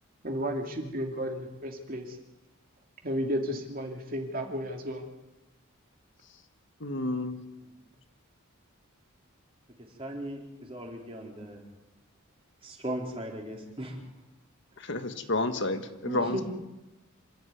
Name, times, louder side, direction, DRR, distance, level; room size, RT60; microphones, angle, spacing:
voice 1, 0.2-2.2 3.0-5.0, equal, 40° right, 3 dB, 2.6 m, -33 dB
voice 2, 6.8-7.4 14.8-16.4, left 2 dB, 55° left, 8 dB, 1.5 m, -30 dB
voice 3, 10.0-11.6 12.6-14.0 16.0-16.4, right 1 dB, 25° right, 0 dB, 4.2 m, -37 dB
26.5 x 12.0 x 9.5 m, 1.0 s
head